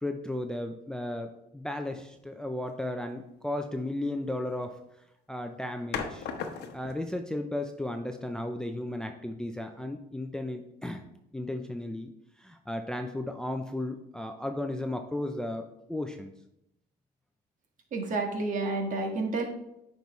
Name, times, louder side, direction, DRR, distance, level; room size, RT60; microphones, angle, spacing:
voice 1, 0.0-4.8 5.3-6.3 6.7-11.0 11.3-12.1 12.4-16.3, left 1 dB, 5° left, 5 dB, 0.5 m, -34 dB
sound 1, 1.9-2.2 4.4-4.8 5.9-7.1, left 6 dB, 80° left, 0.9 m, -37 dB
voice 2, 17.9-19.5, right 3 dB, 50° right, 2 dB, 1.6 m, -30 dB
9.1 x 5.3 x 3.1 m, 0.83 s
cardioid pair, 110°, 17 cm